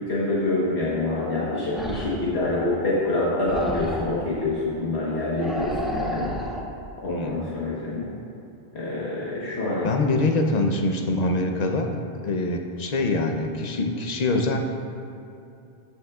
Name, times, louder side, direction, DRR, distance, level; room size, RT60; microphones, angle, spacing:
voice 1, 0.1-6.3 7.0-8.1 8.7-9.9, left 2 dB, 90° left, -7 dB, 1.5 m, -26 dB
sound 1, 1.7-2.3 3.4-4.2 5.4-6.7, equal, ahead, 0.5 m, -31 dB
voice 2, 7.1-7.5 9.8-14.6, left 2 dB, 45° left, 4 dB, 0.7 m, -24 dB
14.0 x 6.4 x 2.4 m, 2.7 s
omnidirectional pair, 1.1 m